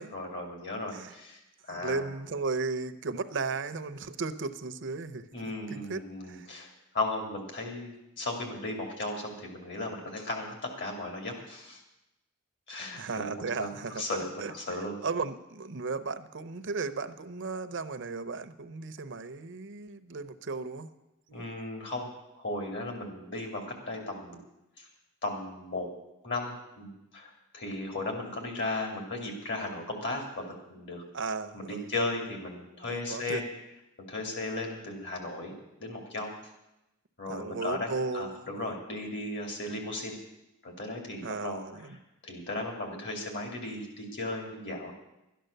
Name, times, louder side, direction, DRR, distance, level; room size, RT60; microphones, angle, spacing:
voice 1, 0.1-2.1 5.3-11.8 12.7-14.9 21.3-22.1 22.3-24.4 24.8-24.9 25.2-25.9 26.2-31.0 31.5-33.4 34.1-36.3 37.2-40.2 40.6-41.6 42.2-44.9, left 2 dB, 55° left, 2 dB, 2.8 m, -36 dB
voice 2, 1.7-5.3 5.7-6.0 6.3-6.5 13.0-14.1 14.4-20.9 31.1-31.9 32.9-33.4 37.3-38.7 41.2-42.0, right 4 dB, 60° right, 12 dB, 0.7 m, -35 dB
12.5 x 10.0 x 6.7 m, 0.92 s
head